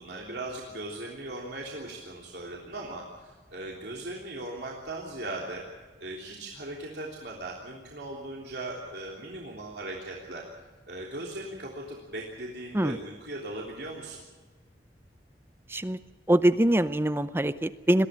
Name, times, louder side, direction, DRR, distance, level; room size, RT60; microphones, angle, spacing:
voice 1, 0.0-5.6 6.0-10.4 10.9-14.2, right 2 dB, 70° right, -2 dB, 3.3 m, -38 dB
voice 2, 16.3-18.1, right 1 dB, 15° right, 13 dB, 0.6 m, -23 dB
21.5 x 15.5 x 8.8 m, 1.3 s
head